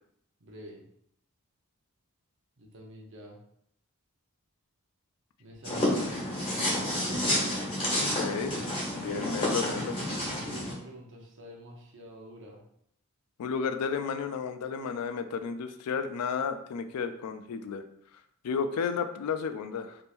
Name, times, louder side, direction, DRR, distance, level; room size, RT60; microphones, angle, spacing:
voice 1, 0.4-0.8 2.6-3.4 5.4-6.3 9.0-12.6, equal, 55° right, 0 dB, 0.8 m, -46 dB
sound 1, 5.6-10.7, left 1 dB, 25° left, 1.2 m, -30 dB
voice 2, 8.0-8.6 8.9-10.0 13.4-17.8 18.4-20.0, left 6 dB, 90° left, 8 dB, 0.4 m, -32 dB
3.6 x 2.8 x 2.5 m, 0.70 s
head